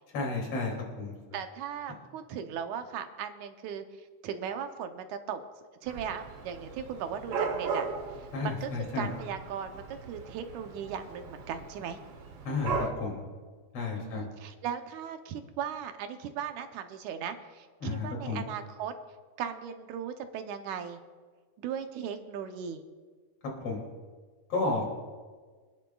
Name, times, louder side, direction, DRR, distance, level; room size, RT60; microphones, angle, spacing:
voice 1, 0.1-1.2 8.3-9.1 12.4-13.2 13.7-14.3 17.8-18.4 23.6-23.8 24.5-24.8, left 3 dB, 50° left, -1 dB, 3.5 m, -32 dB
voice 2, 1.3-3.9 4.2-5.4 5.8-7.9 8.2-12.0 13.9-18.9 19.4-21.0 21.6-22.8, right 8 dB, 80° right, 7 dB, 2.2 m, -37 dB
Dog / Cat, 5.9-12.9, right 5 dB, 60° right, 1.7 m, -37 dB
26.0 x 10.0 x 2.3 m, 1.5 s
omnidirectional pair, 3.5 m